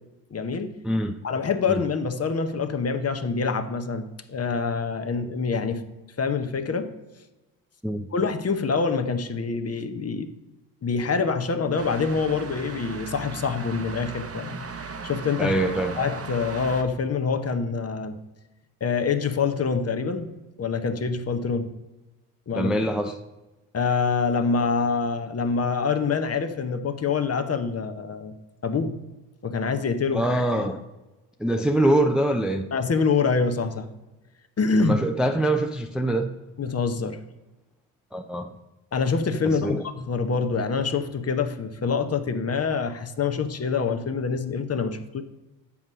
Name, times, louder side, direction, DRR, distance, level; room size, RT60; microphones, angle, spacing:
voice 1, 0.3-0.7 1.2-5.8 6.2-6.9 8.1-10.3 10.8-15.6 16.0-18.2 18.8-21.7 22.5-22.7 23.7-28.4 28.6-29.0 29.4-30.3 32.7-33.9 34.6-35.0 36.6-37.2 38.9-45.2, left 5 dB, 30° left, 8 dB, 0.9 m, -26 dB
voice 2, 0.8-1.2 1.7-1.8 7.8-8.1 15.4-16.0 22.6-23.2 30.1-30.8 31.4-32.7 34.8-36.3 38.1-38.5 39.4-39.8, right 1 dB, ahead, 5 dB, 0.5 m, -24 dB
sound 1, 11.8-16.8, right 5 dB, 30° right, 0.9 m, -37 dB
7.3 x 5.3 x 6.1 m, 1.1 s
hypercardioid pair, 50°, 48 cm